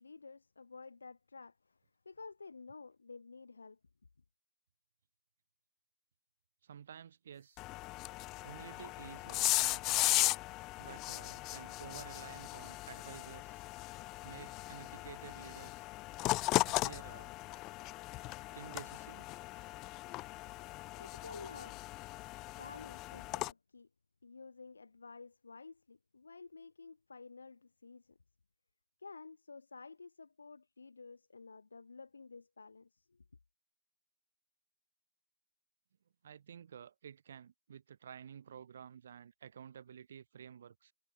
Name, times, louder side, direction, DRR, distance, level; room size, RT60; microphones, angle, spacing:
voice 1, 0.0-1.8 2.1-3.8 21.0-21.8 22.6-23.9 24.2-28.2 29.0-33.2, left 4 dB, 80° left, 3.7 m, -52 dB
voice 2, 6.6-7.6 8.4-10.1 10.8-13.6 14.2-15.8 16.6-17.3 18.5-19.3 36.2-40.9, right 8 dB, 50° right, 0.9 m, -52 dB
chuck-cartavvetro, 7.6-23.5, left 20 dB, 20° left, 0.5 m, -37 dB
hypercardioid pair, 155°, 0 cm